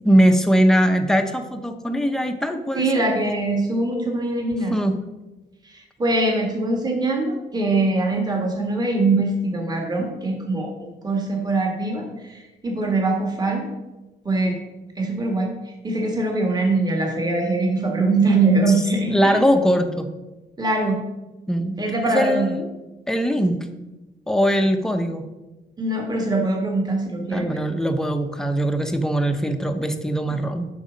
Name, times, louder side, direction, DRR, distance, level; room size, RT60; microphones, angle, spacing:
voice 1, 0.0-3.0 4.7-5.0 19.1-20.1 21.5-21.8 22.1-22.7 23.1-23.6 24.3-25.3 27.3-30.7, equal, 5° left, 5 dB, 0.8 m, -21 dB
voice 2, 2.8-4.7 5.7-13.7 14.3-14.6 15.0-19.4 20.6-21.0 21.8-22.5 25.8-27.5, right 2 dB, 25° right, 0 dB, 1.7 m, -22 dB
8.4 x 6.3 x 5.1 m, 1.1 s
wide cardioid pair, 135°, 17 cm